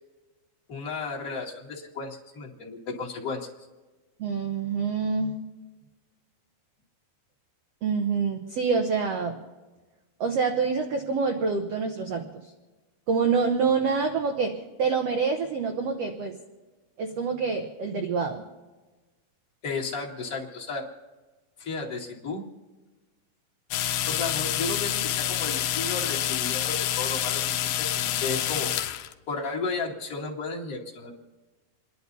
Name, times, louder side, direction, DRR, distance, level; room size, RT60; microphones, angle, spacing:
voice 1, 0.7-3.5 19.6-20.9 21.6-22.5 24.1-28.7 29.3-31.1, left 4 dB, 30° left, -1 dB, 1.9 m, -33 dB
voice 2, 4.2-5.3 7.8-9.4 10.2-12.3 13.1-16.4 17.0-18.4, right 5 dB, 90° right, 4 dB, 1.4 m, -26 dB
sound 1, 23.7-29.1, left 11 dB, 75° left, 2.2 m, -28 dB
29.0 x 11.0 x 4.1 m, 1.2 s
omnidirectional pair, 4.3 m